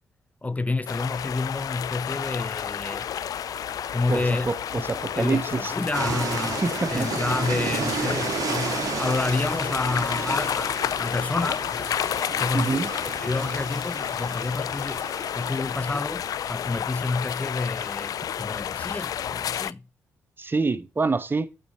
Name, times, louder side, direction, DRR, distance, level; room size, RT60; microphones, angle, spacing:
voice 1, 0.4-3.1 3.9-4.5 5.2-15.1 15.3-19.8, left 3 dB, 20° left, 0.7 m, -29 dB
sound 1, 0.9-19.7, left 9 dB, 65° left, 0.4 m, -30 dB
sound 2, 2.0-18.9, right 8 dB, 85° right, 1.9 m, -47 dB
voice 2, 4.1-4.6 4.9-5.7 6.6-7.1 12.5-12.9 20.4-21.5, right 4 dB, 30° right, 1.2 m, -26 dB
sound 3, 5.9-16.2, right 6 dB, 65° right, 2.1 m, -33 dB
8.3 x 6.9 x 4.4 m
supercardioid pair, 50°, 7 cm